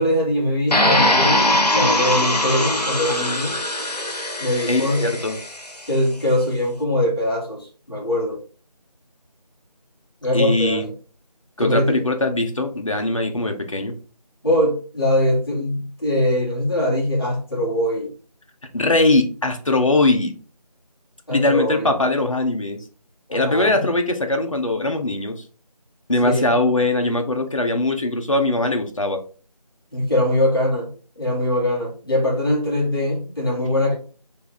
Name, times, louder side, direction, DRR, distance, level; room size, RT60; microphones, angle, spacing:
voice 1, 0.0-3.5 4.4-5.1 5.9-8.4 10.2-10.9 11.6-12.0 14.4-18.1 21.3-21.9 23.3-23.8 26.2-26.4 29.9-30.9 31.1-33.9, left 1 dB, 35° left, 1.5 m, -22 dB
sound 1, 0.7-5.7, left 1 dB, 75° left, 1.0 m, -21 dB
voice 2, 4.7-5.4 10.3-10.9 11.6-13.9 18.7-20.3 21.3-22.8 23.3-25.4 26.1-29.2, left 2 dB, 50° left, 0.8 m, -21 dB
3.4 x 3.1 x 4.2 m
figure-of-eight pair, 175°, 21 cm